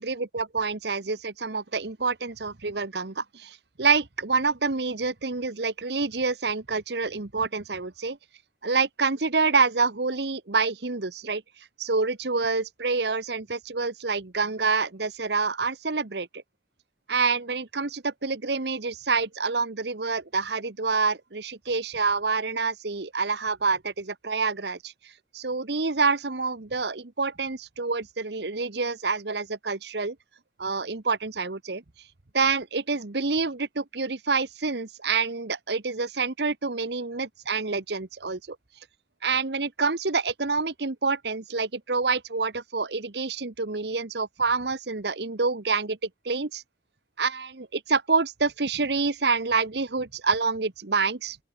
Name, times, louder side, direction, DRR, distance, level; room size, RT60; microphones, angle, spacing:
voice 1, 0.0-8.2 8.6-11.4 11.8-16.3 17.1-24.9 25.3-30.2 30.6-31.8 32.3-38.6 39.2-46.6 47.2-51.4, right 4 dB, 65° right, 1.2 m, -27 dB
open air
head